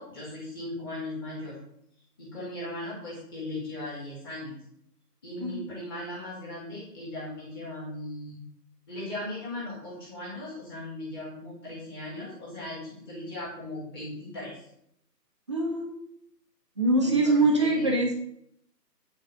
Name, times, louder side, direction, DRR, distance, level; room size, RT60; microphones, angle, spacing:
voice 1, 0.0-1.6 2.2-4.6 5.2-8.4 8.9-14.6 17.0-17.9, left 1 dB, 15° left, -7 dB, 2.1 m, -38 dB
voice 2, 15.5-15.9 16.8-18.1, right 2 dB, 15° right, -1 dB, 1.0 m, -23 dB
9.4 x 4.2 x 6.6 m, 0.73 s
figure-of-eight pair, 160°, 50 cm